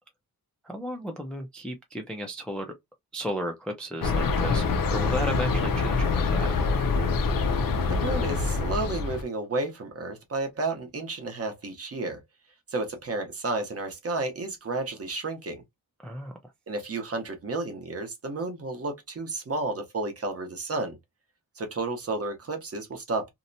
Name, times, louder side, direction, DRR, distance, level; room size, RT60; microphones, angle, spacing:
voice 1, 0.6-2.7 3.1-6.6 16.0-16.3, equal, 5° left, 0.3 m, -34 dB
sound 1, 4.0-9.2, left 4 dB, 65° left, 0.5 m, -25 dB
voice 2, 7.9-12.2 12.7-15.6 16.7-21.0 21.6-23.3, right 2 dB, 40° right, 0.8 m, -32 dB
2.7 x 2.1 x 2.5 m
wide cardioid pair, 175°, 37 cm